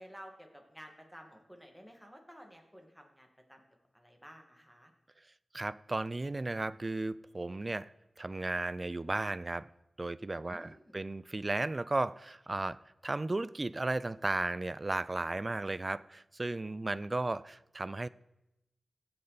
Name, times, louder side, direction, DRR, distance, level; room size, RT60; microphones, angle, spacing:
voice 1, 0.0-3.6 3.9-4.9 10.5-10.9, equal, ahead, 1.9 m, -53 dB
voice 2, 5.5-7.9 8.2-9.7 10.0-12.8 13.0-18.1, right 2 dB, 30° right, 0.3 m, -35 dB
18.5 x 7.7 x 4.0 m
wide cardioid pair, 105°, 0 cm